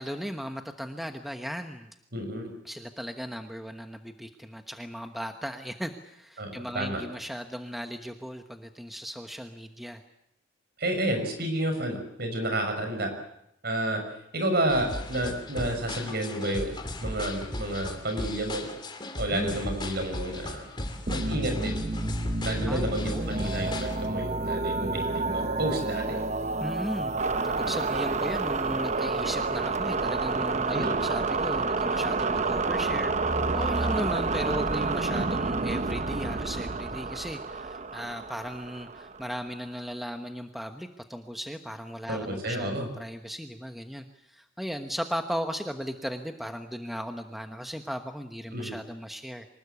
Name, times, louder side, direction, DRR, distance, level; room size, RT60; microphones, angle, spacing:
voice 1, 0.0-1.9 2.6-10.0 19.3-19.6 22.7-23.5 26.6-27.2 27.4-49.5, equal, ahead, 6 dB, 1.1 m, -36 dB
voice 2, 2.1-2.5 6.4-7.0 10.8-13.1 13.6-14.0 14.3-18.7 19.2-20.6 21.1-21.8 22.4-26.2 30.7-31.0 42.1-42.9 48.5-48.7, right 1 dB, 55° right, 5 dB, 6.3 m, -30 dB
sound 1, 14.7-24.1, left 1 dB, 25° left, 2.7 m, -37 dB
sound 2, 21.1-39.5, right 3 dB, 35° right, 0.9 m, -29 dB
25.0 x 20.0 x 8.3 m, 0.76 s
head